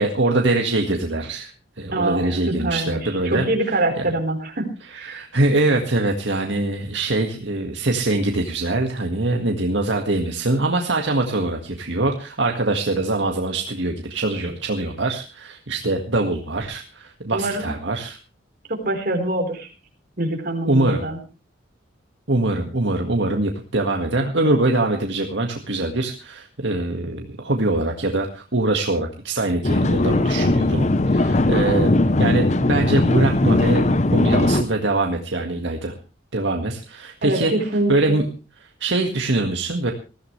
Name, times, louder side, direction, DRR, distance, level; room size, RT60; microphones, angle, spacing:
voice 1, 0.0-4.1 4.9-18.2 20.7-21.0 22.3-31.9 32.2-35.9 36.3-37.5 37.9-38.2 38.6-39.9, right 2 dB, 70° right, 3 dB, 1.9 m, -23 dB
voice 2, 1.9-5.3 17.3-17.7 18.7-19.7 20.2-21.2 37.2-38.2, right 1 dB, 50° right, 3 dB, 4.3 m, -25 dB
sound 1, 29.6-34.6, left 2 dB, 35° left, 0.8 m, -19 dB
21.0 x 15.0 x 3.3 m, 0.33 s
head